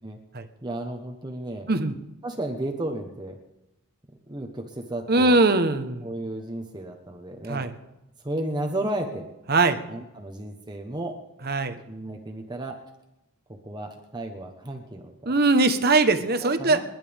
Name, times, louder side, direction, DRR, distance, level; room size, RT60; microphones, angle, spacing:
voice 1, 0.6-1.7 2.2-3.3 4.3-5.4 6.0-7.7 8.2-9.2 9.9-11.1 11.9-12.7 13.6-15.3 16.4-16.8, right 1 dB, 20° right, 3 dB, 1.2 m, -33 dB
voice 2, 5.1-6.1 7.5-7.7 9.5-9.8 11.4-11.8 15.2-16.8, right 3 dB, 45° right, 9 dB, 1.1 m, -21 dB
29.5 x 11.0 x 3.6 m, 0.94 s
head